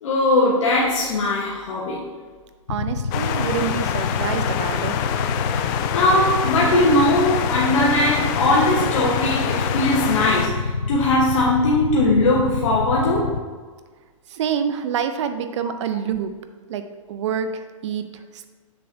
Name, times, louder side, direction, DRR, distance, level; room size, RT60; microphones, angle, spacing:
voice 1, 0.0-2.1 5.9-13.4, left 1 dB, 65° left, -4 dB, 1.2 m, -20 dB
Motorcycle / Idling, 2.7-13.4, left 5 dB, 85° left, 0.5 m, -27 dB
voice 2, 2.7-5.1 14.3-16.3 16.7-18.1 18.3-18.5, right 8 dB, 55° right, 9 dB, 0.7 m, -27 dB
sound 1, 3.1-10.5, left 9 dB, 35° left, 0.5 m, -26 dB
7.6 x 6.7 x 2.8 m, 1.4 s
hypercardioid pair, 120°, 18 cm